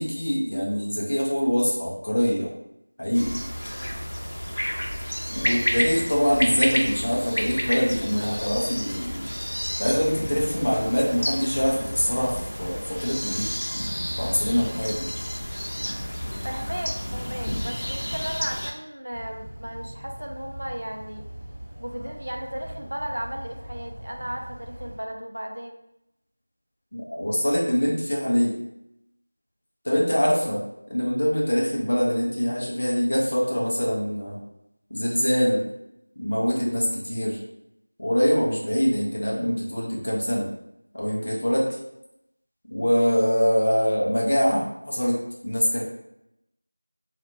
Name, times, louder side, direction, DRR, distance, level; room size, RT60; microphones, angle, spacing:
voice 1, 0.0-2.5 3.0-3.4 5.3-9.3 9.8-13.5 14.2-15.1 26.9-28.6 29.8-30.6 30.9-34.4 34.9-35.6 36.2-37.4 38.0-40.5 40.9-41.7 42.7-45.8, equal, 30° left, -4 dB, 0.6 m, -24 dB
sound 1, 3.1-18.7, equal, 85° left, 0.7 m, -30 dB
voice 2, 16.4-21.2 21.8-25.8, equal, 65° right, 2 dB, 0.5 m, -35 dB
sound 2, 19.1-25.0, right 1 dB, 20° right, 0.9 m, -41 dB
3.2 x 2.4 x 2.6 m, 0.84 s
figure-of-eight pair, 180°, 0 cm